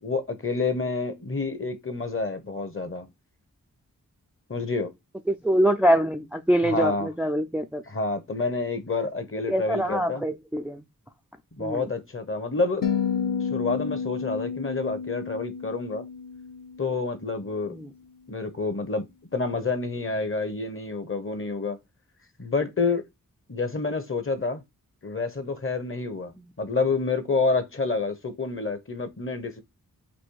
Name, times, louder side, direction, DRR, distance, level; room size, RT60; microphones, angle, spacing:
voice 1, 0.0-3.1 4.5-4.9 6.6-7.1 7.9-10.2 11.6-12.9 13.5-16.0 16.8-17.8 18.3-19.1 19.3-21.8 22.4-23.0 23.5-24.6 25.0-26.3 26.6-29.6, left 3 dB, 35° left, 0.9 m, -28 dB
voice 2, 5.3-7.8 9.5-10.8 11.6-11.9 17.7-17.9, right 1 dB, 5° right, 0.4 m, -24 dB
sound 1, 12.8-17.1, left 6 dB, 65° left, 0.7 m, -30 dB
4.1 x 2.7 x 4.6 m
wide cardioid pair, 65°, 35 cm